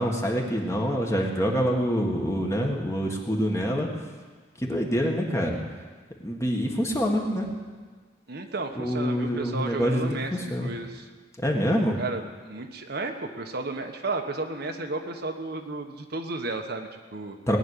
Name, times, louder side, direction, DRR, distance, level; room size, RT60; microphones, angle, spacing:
voice 1, 0.0-3.9 4.6-5.6 6.2-7.5 8.8-10.7 11.4-12.0 17.5-17.6, equal, 15° left, 0 dB, 1.7 m, -26 dB
voice 2, 8.3-11.1 12.0-17.4, right 3 dB, 60° right, 4 dB, 1.2 m, -33 dB
19.0 x 6.3 x 9.9 m, 1.5 s
head